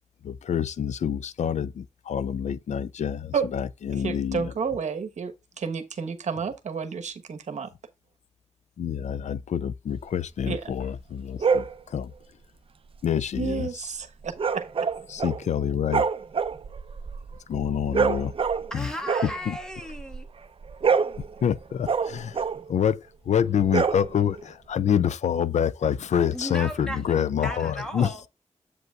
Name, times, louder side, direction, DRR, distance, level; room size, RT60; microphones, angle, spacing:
voice 1, 0.2-4.5 8.8-12.1 13.0-14.0 15.1-16.1 17.5-18.3 18.7-18.9 19.2-19.6 21.4-28.3, left 8 dB, 75° left, 0.4 m, -27 dB
voice 2, 4.0-7.7 10.5-10.6 13.4-14.9, right 6 dB, 75° right, 1.2 m, -31 dB
sound 1, 11.4-11.8 14.4-15.5 15.8-18.8 19.0-20.3 20.6-22.7 23.6-24.4, right 5 dB, 50° right, 0.7 m, -26 dB
voice 3, 18.7-20.3 26.3-28.2, equal, 5° left, 1.6 m, -36 dB
8.0 x 7.9 x 2.4 m
wide cardioid pair, 120°, 12 cm